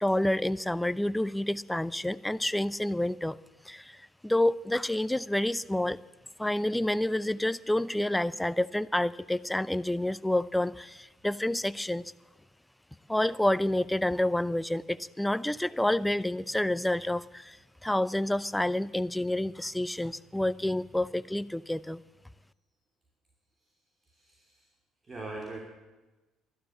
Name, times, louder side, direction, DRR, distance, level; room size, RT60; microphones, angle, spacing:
voice 1, 0.0-3.4 3.6-6.0 6.4-12.1 13.1-17.6 17.8-22.0, left 1 dB, 5° left, 18 dB, 0.5 m, -29 dB
voice 2, 24.0-24.7 25.0-25.6, right 2 dB, 30° right, 0 dB, 2.9 m, -41 dB
12.5 x 12.0 x 8.3 m, 1.1 s
hypercardioid pair, 60°, 0 cm